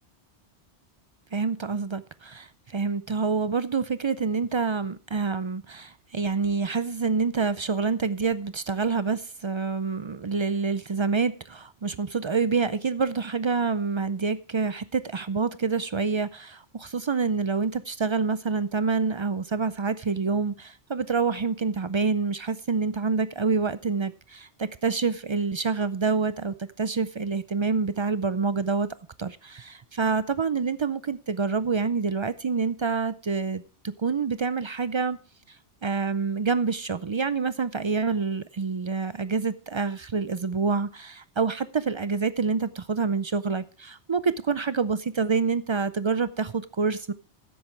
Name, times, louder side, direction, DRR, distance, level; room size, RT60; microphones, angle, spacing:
voice 1, 1.3-28.9 29.2-35.2 35.5-35.6 35.8-47.1, right 5 dB, 50° right, 0.3 m, -27 dB
13.5 x 10.5 x 3.3 m
omnidirectional pair, 1.2 m